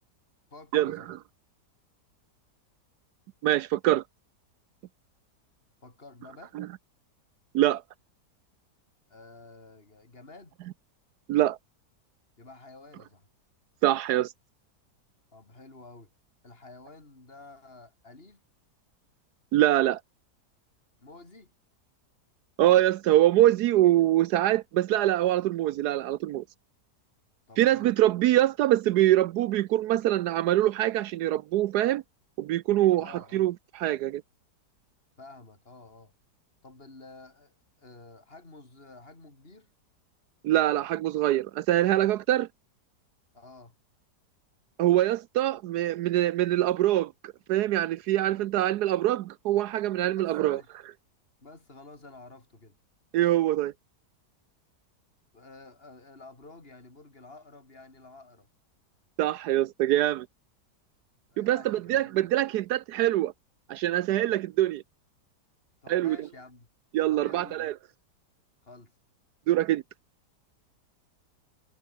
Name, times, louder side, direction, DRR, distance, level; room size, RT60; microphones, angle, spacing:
voice 1, 0.5-1.1 5.8-6.6 9.1-10.6 12.4-13.3 15.3-16.1 16.4-18.4 21.0-21.5 27.5-28.0 32.9-33.5 35.2-36.1 36.6-39.7 43.3-43.7 50.2-50.7 51.4-52.8 55.3-58.5 61.3-62.2 65.8-66.7 67.1-67.7 68.6-68.9, left 3 dB, 35° left, 4.2 m, -50 dB
voice 2, 3.4-4.0 6.5-6.7 7.5-7.8 11.3-11.6 13.8-14.3 19.5-20.0 22.6-26.4 27.6-32.0 32.4-34.2 40.4-42.5 44.8-50.6 53.1-53.7 59.2-60.3 61.4-63.3 63.7-64.8 65.9-66.3 66.9-67.7 69.5-69.8, right 14 dB, 75° right, 1.1 m, -24 dB
omnidirectional pair, 1.8 m